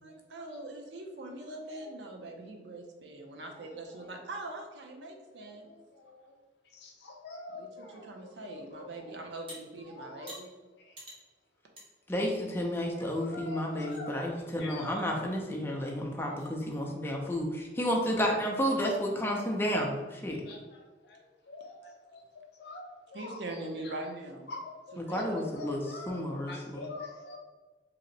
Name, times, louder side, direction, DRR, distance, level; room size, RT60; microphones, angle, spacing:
voice 1, 0.0-5.7 7.5-10.5 23.1-24.5 24.9-25.6, right 2 dB, 70° right, 2 dB, 0.5 m, -42 dB
voice 2, 6.8-8.1 8.4-8.9 9.9-10.4 13.2-14.2 14.6-14.8 20.5-20.6 21.5-21.7 22.1-22.2 22.6-22.9 23.1-23.4 24.5-24.7 25.1-26.2 26.5-27.4, left 3 dB, 65° left, 1 dB, 0.6 m, -44 dB
sound 1, 9.5-9.6 10.3-10.4 11.0-11.2 11.8-11.9 12.3-12.4 13.1-13.2 13.6-14.0 15.6-15.7 16.3-16.5, equal, 30° right, 0.9 m, -47 dB
voice 3, 12.1-20.4 25.0-26.9, equal, 10° left, -1 dB, 0.4 m, -31 dB
2.7 x 2.1 x 3.8 m, 1.2 s
head